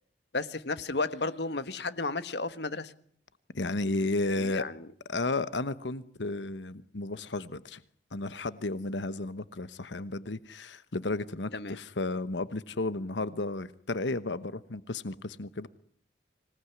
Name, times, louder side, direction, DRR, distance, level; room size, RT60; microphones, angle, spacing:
voice 1, 0.3-2.9 4.4-4.9 11.5-11.8, left 3 dB, 70° left, 13 dB, 1.6 m, -33 dB
voice 2, 3.5-4.6 5.1-7.8 8.1-15.7, left 2 dB, 90° left, 15 dB, 1.1 m, -33 dB
26.0 x 18.5 x 9.8 m, 0.64 s
head